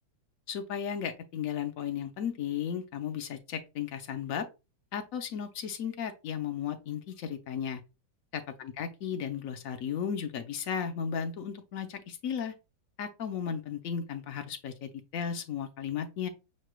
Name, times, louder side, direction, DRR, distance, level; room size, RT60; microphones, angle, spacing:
voice 1, 0.5-4.5 4.9-7.8 8.3-12.5 13.0-16.3, left 8 dB, 75° left, 7 dB, 0.7 m, -35 dB
6.4 x 3.1 x 2.2 m, 0.28 s
omnidirectional pair, 2.1 m